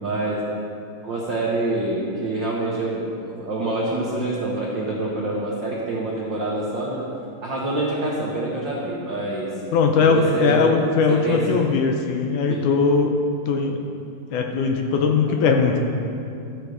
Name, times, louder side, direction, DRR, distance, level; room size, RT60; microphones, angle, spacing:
voice 1, 0.0-0.3 1.0-7.0 7.4-9.5 10.0-10.7 11.1-11.6 12.0-12.1 12.5-12.6, right 2 dB, 90° right, -5 dB, 1.0 m, -26 dB
voice 2, 9.7-13.2 13.5-13.8 14.3-15.8, left 5 dB, 75° left, 3 dB, 2.0 m, -20 dB
13.5 x 5.2 x 6.5 m, 2.6 s
omnidirectional pair, 4.0 m